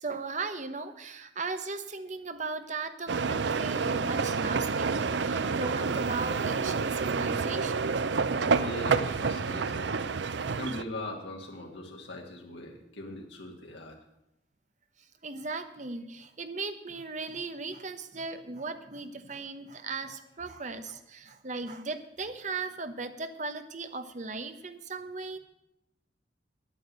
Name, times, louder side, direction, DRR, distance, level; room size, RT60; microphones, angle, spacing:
voice 1, 0.0-7.9 15.2-25.4, right 3 dB, 40° right, 9 dB, 1.0 m, -37 dB
sound 1, 3.1-10.8, right 5 dB, 75° right, 0.6 m, -29 dB
voice 2, 8.5-9.9 10.2-14.0, left 1 dB, 85° left, 0 dB, 1.7 m, -40 dB
9.6 x 9.2 x 8.2 m, 0.83 s
head